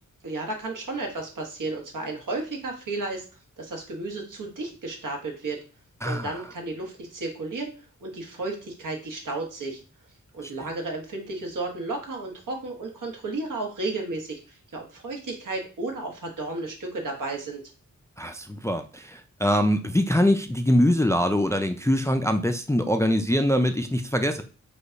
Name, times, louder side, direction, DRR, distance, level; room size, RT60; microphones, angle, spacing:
voice 1, 0.2-3.2 3.6-5.6 6.0-7.7 8.0-9.8 10.3-17.6, right 2 dB, 75° right, 2 dB, 1.3 m, -33 dB
voice 2, 6.0-6.3 18.2-24.4, equal, 10° left, 7 dB, 0.3 m, -23 dB
5.1 x 2.3 x 3.9 m, 0.36 s
wide cardioid pair, 105°, 31 cm